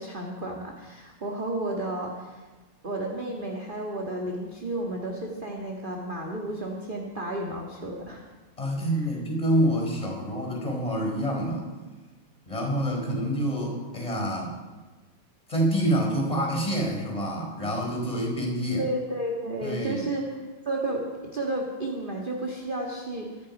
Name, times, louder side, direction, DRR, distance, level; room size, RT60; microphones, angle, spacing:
voice 1, 0.0-2.4 2.8-8.3 9.0-9.1 18.8-23.3, right 1 dB, 25° right, 0 dB, 1.7 m, -32 dB
voice 2, 8.6-11.6 12.5-14.5 15.5-18.8 19.6-20.0, equal, 15° left, 0 dB, 4.6 m, -27 dB
24.5 x 10.0 x 5.4 m, 1.3 s
omnidirectional pair, 2.4 m